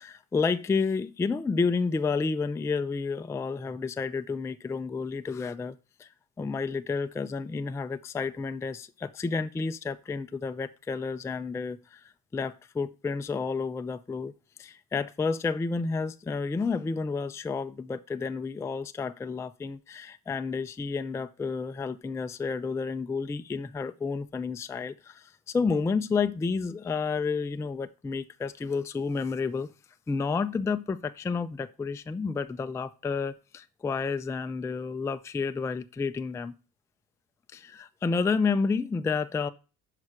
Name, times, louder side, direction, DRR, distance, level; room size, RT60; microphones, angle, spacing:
voice 1, 0.0-6.1 6.4-12.0 12.3-14.3 14.6-29.7 30.1-36.5 37.5-39.5, left 4 dB, 10° left, 0.3 m, -30 dB
6.1 x 5.0 x 4.8 m
supercardioid pair, 75°, 41 cm